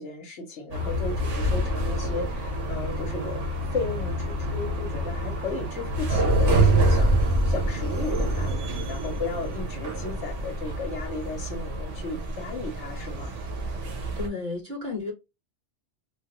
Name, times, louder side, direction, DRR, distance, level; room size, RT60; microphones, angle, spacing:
voice 1, 0.0-7.1 7.5-13.3, left 3 dB, 70° left, 1.0 m, -35 dB
sound 1, 0.7-14.3, right 1 dB, 85° right, 1.1 m, -26 dB
voice 2, 13.8-15.1, left 3 dB, 55° right, 1.6 m, -33 dB
3.1 x 2.3 x 2.9 m
omnidirectional pair, 1.2 m